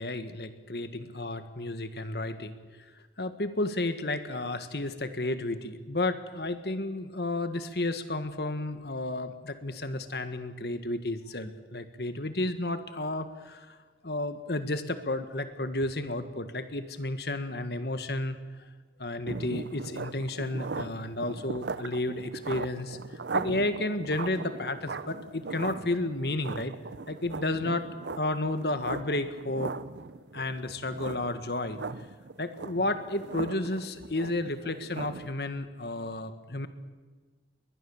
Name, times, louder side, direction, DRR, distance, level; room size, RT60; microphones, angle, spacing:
voice 1, 0.0-2.6 3.2-13.8 14.0-18.4 19.0-26.7 27.1-27.9 28.2-29.7 30.3-31.8 32.4-36.7, left 2 dB, 65° left, 10 dB, 1.6 m, -32 dB
sound 1, 19.3-35.3, right 4 dB, 80° right, 0.7 m, -39 dB
21.5 x 20.0 x 7.1 m, 1.4 s
head